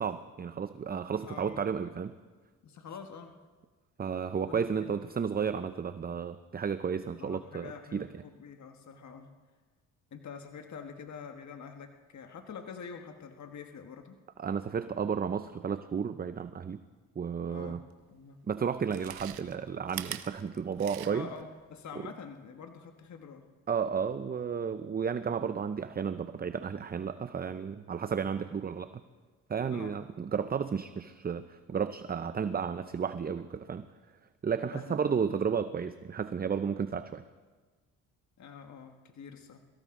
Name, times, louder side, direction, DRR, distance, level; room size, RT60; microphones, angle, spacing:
voice 1, 0.0-2.1 4.0-8.1 14.4-16.8 17.2-17.8 18.5-21.3 23.7-28.9 29.5-33.9 34.4-37.2, right 6 dB, 25° right, 11 dB, 0.6 m, -33 dB
voice 2, 1.2-1.6 2.6-3.3 4.5-5.0 7.0-9.3 10.1-14.2 17.5-17.8 18.1-18.4 21.1-23.4 29.7-29.9 34.7-35.2 38.4-39.6, left 6 dB, 50° left, 5 dB, 1.4 m, -46 dB
Chewing mastication, 18.0-18.1 18.8-21.4 21.8-21.9, right 13 dB, 85° right, 0.9 m, -42 dB
23.0 x 14.0 x 3.7 m, 1.4 s
supercardioid pair, 70°, 36 cm